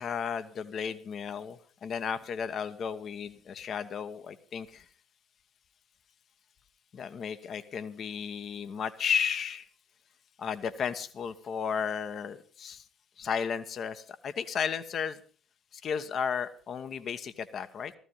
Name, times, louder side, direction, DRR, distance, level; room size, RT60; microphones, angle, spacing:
voice 1, 0.0-4.8 6.9-9.7 10.4-12.8 13.2-15.2 15.7-17.9, left 7 dB, 50° left, 11 dB, 1.2 m, -34 dB
16.0 x 14.5 x 5.6 m, 0.43 s
hypercardioid pair, 50°, 0 cm